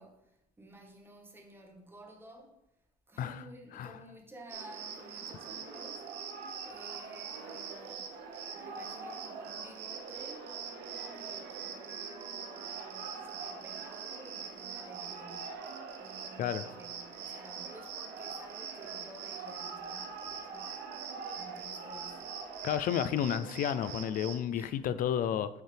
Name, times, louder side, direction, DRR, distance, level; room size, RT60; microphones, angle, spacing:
voice 1, 0.0-2.6 3.1-6.1 6.6-8.1 8.5-10.6 11.1-15.6 16.0-20.8 21.4-22.4 24.5-24.8, right 1 dB, 15° right, 1.1 m, -53 dB
Cricket, 4.5-24.4, right 6 dB, 80° right, 0.8 m, -42 dB
voice 2, 22.6-25.5, left 9 dB, 55° left, 0.4 m, -31 dB
6.3 x 4.6 x 3.4 m
cardioid pair, 110°, 17 cm